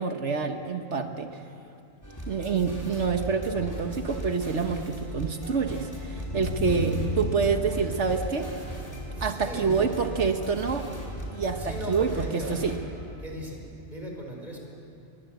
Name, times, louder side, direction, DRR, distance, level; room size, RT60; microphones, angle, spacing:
voice 1, 0.0-1.4 2.3-8.5 9.2-10.9 11.3-12.7, right 5 dB, 70° right, 6 dB, 1.5 m, -27 dB
sound 1, 2.0-12.8, equal, 15° left, 4.8 m, -38 dB
sound 2, 2.9-13.2, equal, 45° left, 7.0 m, -38 dB
voice 2, 9.1-10.0 11.4-12.6 13.2-14.6, equal, 35° right, 0 dB, 5.2 m, -38 dB
26.5 x 23.0 x 8.1 m, 2.6 s
omnidirectional pair, 1.2 m